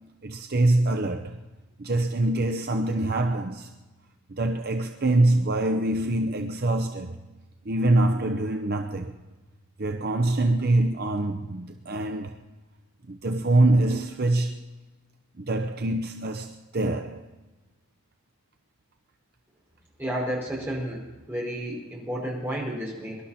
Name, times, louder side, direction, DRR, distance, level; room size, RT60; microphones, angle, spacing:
voice 1, 0.2-1.4 1.8-3.7 4.3-7.2 7.7-9.1 9.8-12.4 13.1-14.6 15.4-17.3, right 2 dB, 45° right, 0.7 m, -24 dB
voice 2, 20.0-21.0 21.3-23.2, equal, 10° right, 5.1 m, -31 dB
24.0 x 12.0 x 4.3 m
head